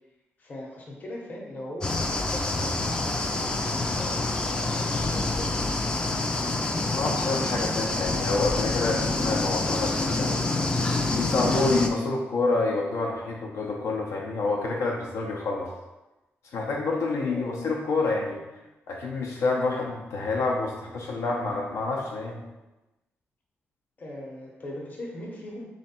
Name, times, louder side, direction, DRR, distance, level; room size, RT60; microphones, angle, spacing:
voice 1, 0.4-2.8 3.5-6.0 17.2-17.7 18.4-18.5 24.0-25.6, left 1 dB, 40° left, -2 dB, 0.9 m, -40 dB
sound 1, 1.8-11.9, left 2 dB, 20° left, 0.3 m, -27 dB
voice 2, 6.8-10.7 11.2-15.7 16.5-18.4 18.9-22.4, left 3 dB, 85° left, -1 dB, 0.7 m, -28 dB
3.6 x 3.2 x 4.3 m, 1.1 s
wide cardioid pair, 175°, 4 cm